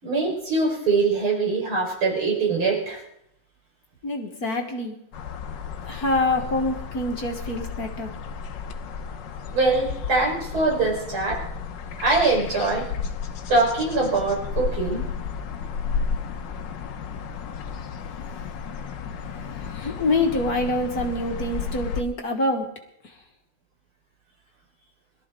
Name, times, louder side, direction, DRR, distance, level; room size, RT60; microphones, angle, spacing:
voice 1, 0.0-3.0 9.5-11.5 12.0-12.9 13.5-15.1, right 3 dB, 75° right, -2 dB, 5.5 m, -23 dB
voice 2, 4.0-5.0 5.8-8.1 19.4-22.7 23.0-23.1, left 2 dB, 45° left, 3 dB, 1.9 m, -26 dB
sound 1, 5.1-22.0, left 6 dB, 65° left, 1.5 m, -33 dB
21.5 x 13.5 x 3.8 m, 0.76 s
omnidirectional pair, 2.3 m